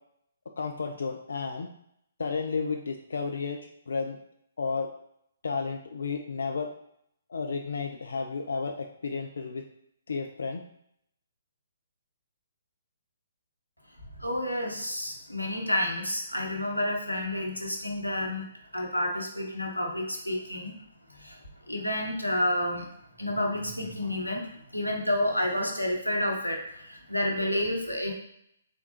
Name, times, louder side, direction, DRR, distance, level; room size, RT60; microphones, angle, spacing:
voice 1, 0.6-1.7 2.2-4.2 4.6-4.9 5.4-6.7 7.3-9.6 10.1-10.6, left 4 dB, 60° left, 4 dB, 0.3 m, -32 dB
voice 2, 14.2-18.5 18.7-20.7 21.1-21.4 21.7-22.9 23.2-28.1, left 1 dB, 85° left, 1 dB, 0.8 m, -30 dB
3.5 x 3.5 x 2.8 m, 0.74 s
figure-of-eight pair, 130°, 0 cm